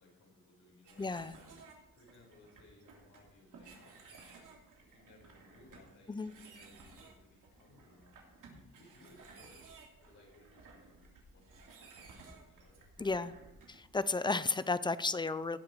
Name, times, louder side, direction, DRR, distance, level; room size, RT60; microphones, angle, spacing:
voice 1, 0.0-9.6 10.0-11.0 11.3-12.9, left 2 dB, 70° left, -3 dB, 5.1 m, -63 dB
sound 1, 0.8-14.3, right 4 dB, 80° right, 2.9 m, -57 dB
voice 2, 1.0-1.4 6.1-6.3 13.0-13.3 13.7-15.6, left 3 dB, 15° left, 15 dB, 0.4 m, -33 dB
18.5 x 6.7 x 4.5 m, 0.93 s
wide cardioid pair, 130°, 31 cm